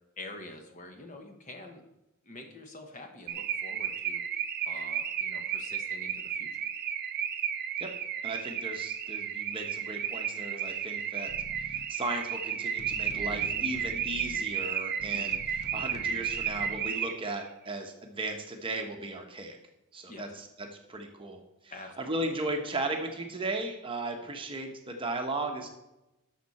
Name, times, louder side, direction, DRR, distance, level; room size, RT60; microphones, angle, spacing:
voice 1, 0.2-1.9 2.2-4.3 4.7-6.6 20.1-20.4 21.7-22.2, left 2 dB, 35° left, 4 dB, 1.1 m, -46 dB
Car / Alarm, 3.3-17.4, right 8 dB, 45° right, 0.5 m, -33 dB
voice 2, 8.2-11.3 11.6-19.6 19.9-25.7, right 2 dB, 25° right, 3 dB, 1.0 m, -36 dB
sound 1, 11.3-11.9 12.8-14.4 15.0-16.8, left 1 dB, 90° left, 0.9 m, -46 dB
11.0 x 6.6 x 4.2 m, 0.93 s
head